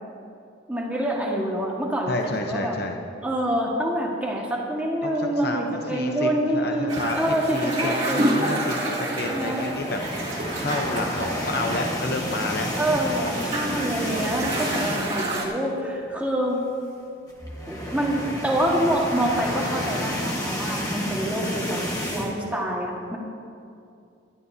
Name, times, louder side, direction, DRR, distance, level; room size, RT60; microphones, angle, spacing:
voice 1, 0.7-2.2 2.4-2.7 3.2-8.3 9.1-9.7 12.8-16.6 17.7-21.8 22.1-23.2, right 1 dB, 5° right, -3 dB, 1.6 m, -26 dB
voice 2, 2.1-2.9 5.0-10.0 10.6-12.7, left 2 dB, 50° left, 3 dB, 0.8 m, -30 dB
sound 1, 6.9-15.5, right 1 dB, 25° right, 2.1 m, -29 dB
sound 2, 9.5-15.3 15.7-15.9 16.1-16.2 17.3-22.3, equal, 15° left, 1.4 m, -31 dB
20.0 x 12.0 x 2.7 m, 2.5 s
head